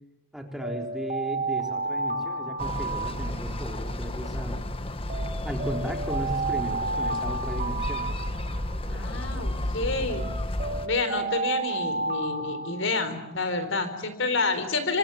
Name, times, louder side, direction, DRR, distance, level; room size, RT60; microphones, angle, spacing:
voice 1, 0.3-4.6 5.4-8.1, equal, ahead, 2 dB, 3.9 m, -35 dB
Alarm, 0.6-3.9 5.1-8.9 10.1-13.4, right 3 dB, 35° right, 2.4 m, -32 dB
sound 1, 2.6-10.9, left 1 dB, 25° left, 1.5 m, -32 dB
voice 2, 8.9-10.3 10.8-15.0, left 3 dB, 65° left, 10 dB, 4.3 m, -28 dB
28.5 x 26.0 x 7.2 m, 0.88 s
head